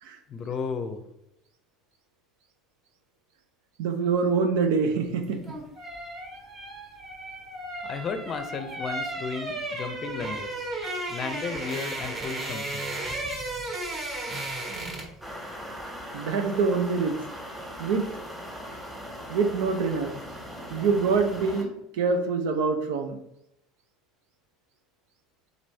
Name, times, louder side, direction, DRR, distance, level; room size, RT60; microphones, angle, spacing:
voice 1, 0.3-1.0 7.8-10.7 11.1-13.0, left 5 dB, 40° left, 8 dB, 0.6 m, -34 dB
voice 2, 3.8-5.4 16.1-17.2 17.8-18.1 19.3-20.1 20.7-23.2, right 4 dB, 70° right, 6 dB, 0.6 m, -25 dB
sound 1, 5.2-15.2 15.5-15.7, right 2 dB, 35° right, 1.4 m, -34 dB
sound 2, 15.2-21.6, equal, 5° right, 1.4 m, -39 dB
4.0 x 3.1 x 4.0 m, 0.83 s
hypercardioid pair, 70°, 0 cm